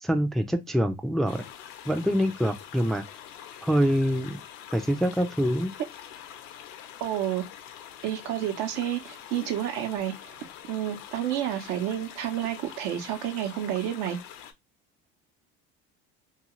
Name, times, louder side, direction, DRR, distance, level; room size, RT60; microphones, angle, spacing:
voice 1, 0.0-1.4 1.9-3.0 3.6-4.4 4.7-5.7, equal, ahead, 0.4 m, -25 dB
sound 1, 1.3-14.5, left 10 dB, 75° left, 0.6 m, -45 dB
voice 2, 7.0-7.5 8.0-10.3 10.7-14.2, right 11 dB, 75° right, 0.8 m, -30 dB
2.4 x 2.4 x 3.0 m
supercardioid pair, 85°, 30 cm